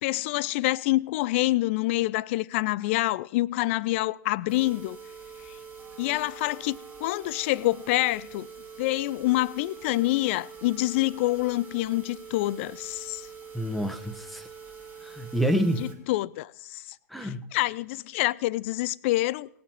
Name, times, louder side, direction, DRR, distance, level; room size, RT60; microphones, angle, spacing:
voice 1, 0.0-5.0 6.0-8.5 8.8-13.3 15.8-16.8 17.2-19.5, left 18 dB, 45° left, 0.4 m, -27 dB
sound 1, 4.5-15.9 16.4-16.5 16.9-17.0 17.4-17.5, right 6 dB, 20° right, 2.1 m, -45 dB
voice 2, 13.5-14.5 15.0-15.9 17.1-17.5, equal, ahead, 1.0 m, -28 dB
18.5 x 7.1 x 4.6 m
figure-of-eight pair, 105°, 9 cm